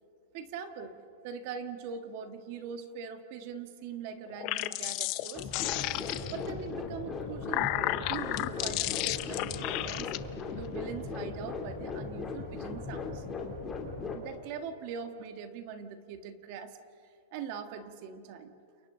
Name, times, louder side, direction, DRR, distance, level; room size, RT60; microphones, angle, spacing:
voice 1, 0.3-0.9 1.2-5.5 6.3-10.1 10.6-13.3 14.1-16.8 17.3-18.6, right 6 dB, 40° right, 7 dB, 1.6 m, -42 dB
sound 1, 4.3-6.5 7.2-10.2, left 18 dB, 35° left, 0.6 m, -33 dB
sound 2, 5.3-14.2, left 4 dB, 15° left, 3.0 m, -38 dB
29.5 x 29.0 x 3.9 m, 2.5 s
supercardioid pair, 170°, 0 cm